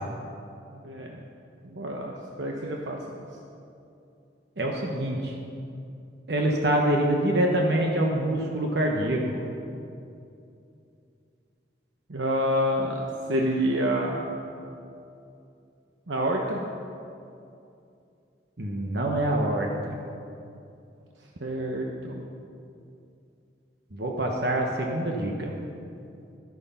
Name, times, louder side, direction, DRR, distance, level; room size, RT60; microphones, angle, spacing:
voice 1, 0.7-1.2 1.6-2.1 2.4-3.2 12.1-14.4 16.1-16.6 21.4-22.2, equal, 85° right, 0 dB, 1.0 m, -28 dB
voice 2, 4.6-5.3 6.3-9.4 18.6-20.0 23.9-25.5, right 1 dB, 60° right, 0 dB, 1.1 m, -25 dB
12.5 x 9.5 x 5.7 m, 2.6 s
head